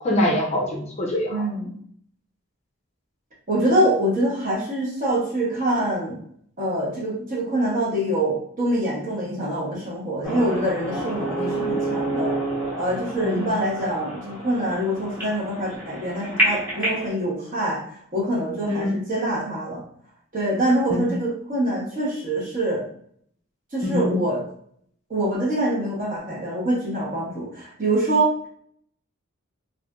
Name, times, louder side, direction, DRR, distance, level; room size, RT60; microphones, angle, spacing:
voice 1, 0.0-1.4 13.2-13.5 18.6-18.9 20.9-21.1 23.8-24.2, left 1 dB, 30° left, -1 dB, 0.5 m, -24 dB
voice 2, 1.3-1.7 3.5-6.2 6.6-12.3 12.8-19.8 20.3-22.8 23.7-24.4 25.1-28.5, right 1 dB, 35° right, -5 dB, 1.0 m, -25 dB
sound 1, 10.2-17.1, right 1 dB, 10° right, 1.0 m, -28 dB
3.2 x 2.5 x 2.4 m, 0.63 s
head